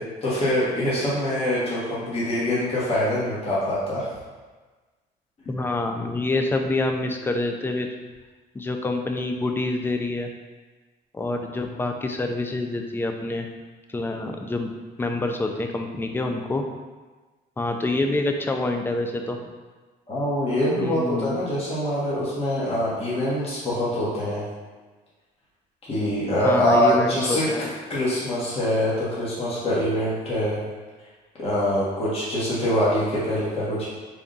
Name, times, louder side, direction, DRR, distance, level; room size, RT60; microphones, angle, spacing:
voice 1, 0.0-4.1 20.1-24.4 25.9-30.6 31.4-33.9, equal, 35° left, -8 dB, 1.2 m, -24 dB
voice 2, 5.5-7.9 8.5-10.3 11.1-13.5 13.9-14.7 15.0-16.6 17.6-19.4 20.8-21.3 26.4-27.7, left 2 dB, 15° left, 4 dB, 0.3 m, -26 dB
3.5 x 2.3 x 3.9 m, 1.3 s
cardioid pair, 110°, 17 cm